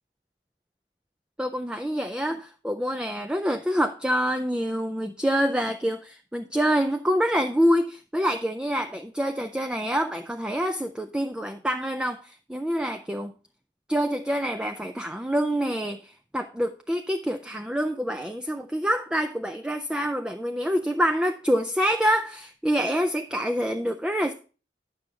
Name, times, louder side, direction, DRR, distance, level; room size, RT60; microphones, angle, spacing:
voice 1, 1.4-13.3 13.9-24.3, equal, 5° right, 0.3 m, -26 dB
9.2 x 6.2 x 3.4 m
head